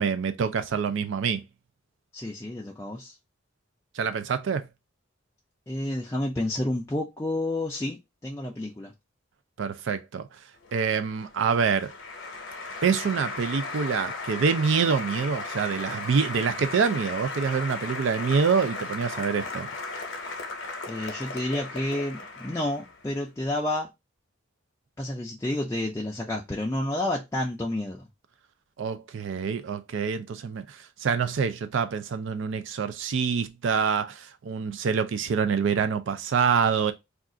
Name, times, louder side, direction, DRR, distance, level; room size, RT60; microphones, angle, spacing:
voice 1, 0.0-1.4 4.0-4.6 9.6-10.3 10.7-11.9 12.8-19.7 28.8-36.9, right 6 dB, 70° right, 0.4 m, -26 dB
voice 2, 2.1-3.1 5.7-8.9 20.9-23.9 25.0-28.1, left 1 dB, 15° left, 0.3 m, -30 dB
Applause, 10.6-23.1, left 3 dB, 70° left, 0.7 m, -36 dB
2.4 x 2.4 x 3.7 m
head